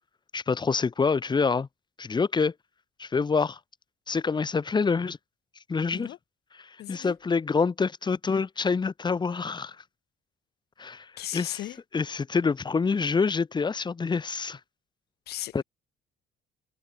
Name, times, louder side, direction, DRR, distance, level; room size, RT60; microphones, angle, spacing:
voice 1, 0.3-1.7 2.0-2.5 3.0-3.6 4.1-5.2 5.7-6.1 6.5-9.8 10.8-11.6 11.9-14.6 15.5-15.6, left 5 dB, 25° left, 2.8 m, -26 dB
voice 2, 6.8-7.1 11.2-11.8 15.3-15.6, left 14 dB, 70° left, 5.0 m, -36 dB
cardioid pair, 110°, 17 cm